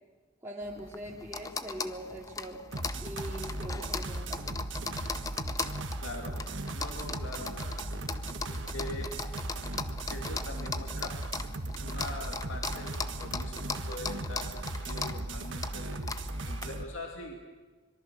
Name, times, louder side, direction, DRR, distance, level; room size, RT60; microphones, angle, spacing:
voice 1, 0.4-2.6 3.0-4.6, equal, 15° right, -5 dB, 2.5 m, -42 dB
sound 1, 0.6-16.6, left 4 dB, 20° left, 0.7 m, -39 dB
sound 2, 2.7-16.8, right 2 dB, 75° right, 1.5 m, -37 dB
voice 2, 6.0-6.4 6.7-7.7 8.5-9.2 10.1-11.1 11.8-16.1 16.5-17.4, left 1 dB, 90° left, 1 dB, 2.8 m, -43 dB
25.0 x 22.5 x 6.5 m, 1.3 s
head